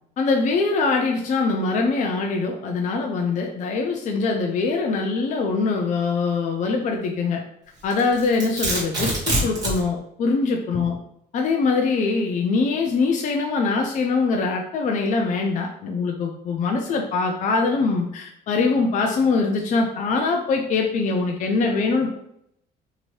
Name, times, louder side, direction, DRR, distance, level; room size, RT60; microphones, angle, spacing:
voice 1, 0.2-7.4 7.8-10.9 11.3-22.2, left 4 dB, 45° left, 2 dB, 0.4 m, -23 dB
Domestic sounds home sounds, 7.9-9.8, right 1 dB, 25° right, 1.4 m, -24 dB
2.8 x 2.6 x 3.0 m, 0.74 s
cardioid pair, 110°, 17 cm